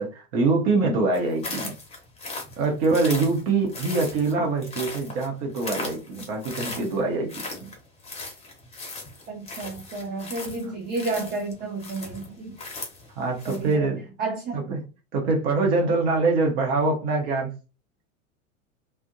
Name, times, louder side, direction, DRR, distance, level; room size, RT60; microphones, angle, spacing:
voice 1, 0.0-1.7 2.6-7.7 13.2-14.0 14.5-14.8 15.1-17.5, right 3 dB, 50° right, 0.9 m, -24 dB
sound 1, 1.1-13.7, left 3 dB, 15° left, 0.8 m, -38 dB
voice 2, 9.3-12.6 13.5-13.9 14.2-14.6, right 3 dB, 25° right, 0.6 m, -31 dB
2.5 x 2.1 x 2.5 m
figure-of-eight pair, 85°, 40 cm